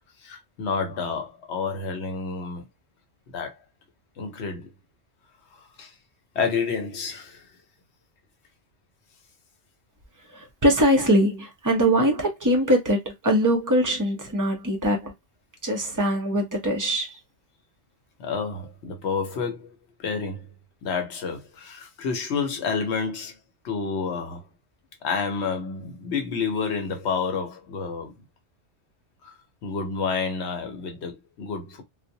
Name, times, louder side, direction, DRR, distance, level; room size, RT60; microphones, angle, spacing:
voice 1, 0.2-2.7 3.3-3.6 4.2-4.7 5.6-5.9 6.3-7.5 18.2-20.5 20.8-23.4 23.6-24.5 25.0-28.1 29.2-29.3 29.6-31.8, left 5 dB, 70° left, 1.0 m, -29 dB
voice 2, 10.3-15.1 15.6-17.2, equal, 25° right, 0.4 m, -22 dB
2.2 x 2.0 x 2.7 m
omnidirectional pair, 1.2 m